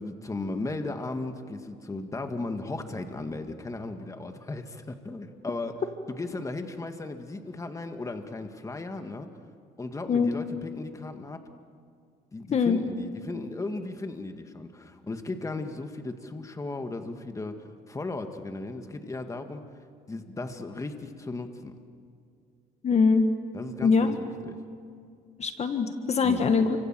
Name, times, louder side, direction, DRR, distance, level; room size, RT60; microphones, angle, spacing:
voice 1, 0.0-5.8 6.1-9.3 9.8-11.4 12.3-19.6 20.1-21.8 23.5-24.6 26.2-26.4, left 2 dB, 20° left, 6 dB, 1.9 m, -36 dB
voice 2, 22.8-23.2 23.8-24.2 25.4-26.7, left 5 dB, 40° left, 7 dB, 1.7 m, -22 dB
29.5 x 25.5 x 7.7 m, 2.3 s
cardioid pair, 110°, 17 cm